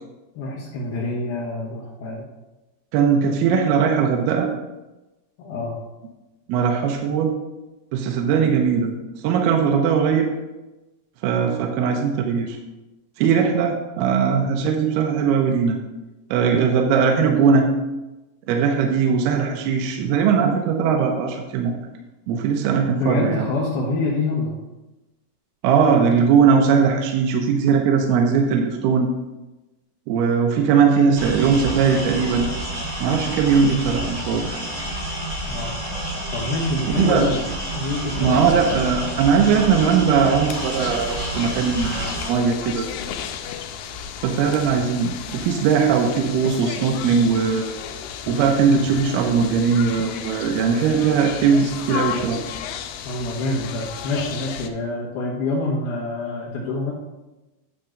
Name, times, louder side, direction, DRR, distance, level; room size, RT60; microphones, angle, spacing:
voice 1, 0.4-2.2 5.4-5.7 23.0-24.5 35.5-35.7 36.3-37.5 37.8-38.6 53.0-56.9, left 2 dB, 65° left, -6 dB, 2.1 m, -26 dB
voice 2, 2.9-4.5 6.5-7.3 7.9-8.9 9.2-10.3 11.2-12.6 13.2-15.8 16.3-17.7 18.5-21.8 22.3-23.4 25.6-29.1 30.1-32.5 33.0-34.6 36.9-37.3 38.2-42.9 44.2-47.7 48.3-52.4, right 6 dB, 75° right, 2 dB, 2.5 m, -19 dB
sound 1, 31.2-42.3, right 1 dB, 25° right, 2.1 m, -29 dB
sound 2, 37.1-54.7, left 8 dB, 85° left, 2.9 m, -34 dB
10.0 x 3.6 x 6.4 m, 1.1 s
omnidirectional pair, 5.0 m